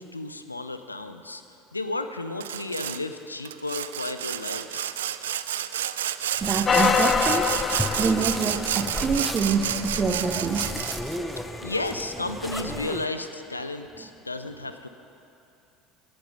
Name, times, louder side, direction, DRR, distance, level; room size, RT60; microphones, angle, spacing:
voice 1, 0.0-1.4 1.7-4.9 11.6-14.9, left 2 dB, 85° left, 9 dB, 0.5 m, -33 dB
Sawing, 2.4-3.0 3.5-11.2, right 11 dB, 70° right, 0.4 m, -30 dB
sound 1, 6.4-13.1, equal, ahead, 0.9 m, -34 dB
voice 2, 6.4-7.5 8.0-10.7 14.0-14.1, right 5 dB, 30° right, 9 dB, 0.8 m, -26 dB
sound 2, 6.7-11.1 11.7-11.8, left 6 dB, 30° left, 0.5 m, -27 dB
17.5 x 8.7 x 5.5 m, 2.8 s
figure-of-eight pair, 70°, 0 cm